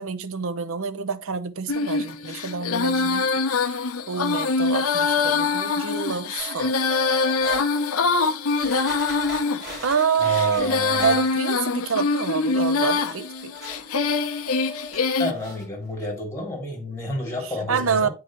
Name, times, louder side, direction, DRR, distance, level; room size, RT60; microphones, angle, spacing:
voice 1, 0.0-3.2 3.5-6.7 9.8-13.5 17.4-18.1, right 6 dB, 65° right, 0.7 m, -27 dB
Female singing, 1.7-15.3, left 4 dB, 80° left, 0.8 m, -24 dB
sound 1, 6.4-7.6 8.2-8.3 8.6-11.6 11.9-15.0 15.3-15.6 16.0-16.1, equal, 50° right, 4.1 m, -41 dB
voice 2, 10.2-11.1 15.2-18.1, left 2 dB, 15° left, 2.7 m, -30 dB
8.6 x 4.7 x 3.0 m
head